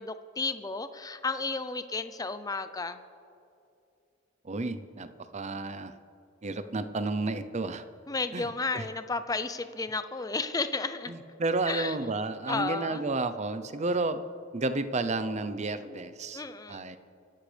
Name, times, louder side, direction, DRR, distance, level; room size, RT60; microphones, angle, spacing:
voice 1, 0.0-3.0 8.1-11.1 11.7-11.9 12.5-13.0 16.3-17.0, left 3 dB, 20° left, 11 dB, 0.6 m, -33 dB
voice 2, 4.4-6.0 6.4-7.8 8.3-8.5 8.7-8.9 11.1-14.2 14.5-16.4 16.7-17.0, right 3 dB, 35° right, 11 dB, 0.7 m, -31 dB
25.5 x 11.5 x 3.4 m, 2.5 s
head